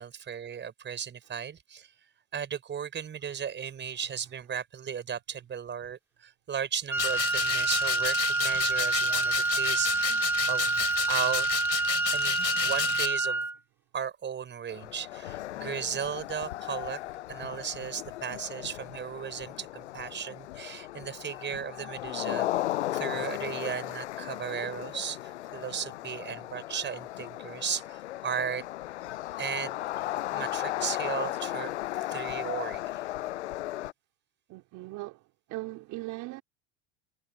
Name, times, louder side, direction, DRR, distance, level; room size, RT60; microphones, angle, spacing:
voice 1, 0.0-1.9 2.3-11.5 12.1-13.5 13.9-17.0 17.3-28.6 29.4-31.7 32.1-33.0, right 8 dB, 35° right, 5.7 m, -36 dB
Wind instrument woodwind instrument, 6.9-13.6, right 3 dB, 5° right, 2.5 m, -28 dB
sound 1, 7.0-13.1, left 12 dB, 45° left, 5.1 m, -32 dB
sound 2, 14.7-33.9, left 15 dB, 85° left, 6.5 m, -36 dB
voice 2, 34.5-35.2 35.5-36.4, right 20 dB, 60° right, 3.7 m, -39 dB
hypercardioid pair, 90°, 34 cm